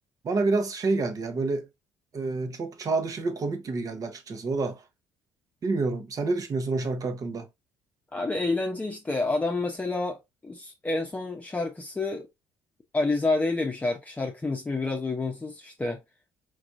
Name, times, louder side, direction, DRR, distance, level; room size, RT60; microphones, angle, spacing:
voice 1, 0.2-1.7 2.1-4.8 5.6-7.5, right 3 dB, 45° right, 1.1 m, -28 dB
voice 2, 8.1-12.2 12.9-16.0, left 3 dB, 15° left, 0.9 m, -29 dB
4.7 x 3.0 x 2.6 m
supercardioid pair, 80°, 9 cm